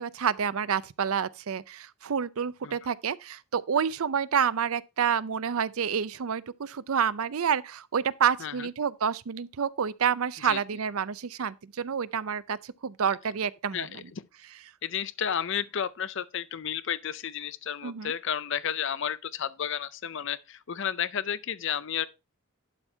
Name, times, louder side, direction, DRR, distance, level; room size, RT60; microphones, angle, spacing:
voice 1, 0.0-13.9 17.8-18.1, right 7 dB, 75° right, 0.5 m, -28 dB
voice 2, 13.7-14.2 14.8-22.1, left 8 dB, 55° left, 0.5 m, -32 dB
11.5 x 4.5 x 4.4 m
head